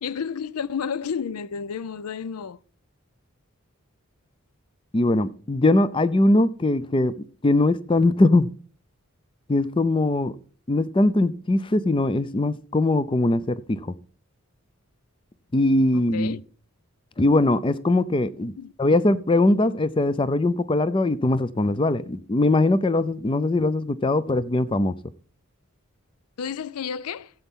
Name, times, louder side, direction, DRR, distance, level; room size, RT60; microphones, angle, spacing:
voice 1, 0.0-2.6 15.9-16.4 18.6-18.7 26.4-27.3, left 6 dB, 85° left, 0.5 m, -31 dB
voice 2, 4.9-7.1 7.4-8.5 9.5-10.3 10.7-13.9 15.5-16.4 17.2-18.5 18.8-24.9, left 2 dB, 20° left, 0.4 m, -21 dB
15.5 x 8.0 x 3.7 m
head